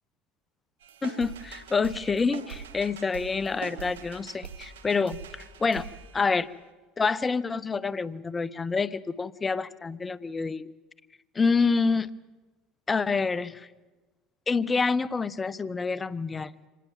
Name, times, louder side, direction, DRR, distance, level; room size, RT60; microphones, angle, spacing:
sound 1, 0.8-6.7, right 6 dB, 90° right, 1.9 m, -43 dB
voice 1, 1.0-5.9 6.1-6.5 7.0-10.7 11.3-12.1 12.9-13.7 14.5-16.5, left 4 dB, 25° left, 20 dB, 0.8 m, -27 dB
25.0 x 18.5 x 7.3 m, 1.2 s
hypercardioid pair, 85°, 0 cm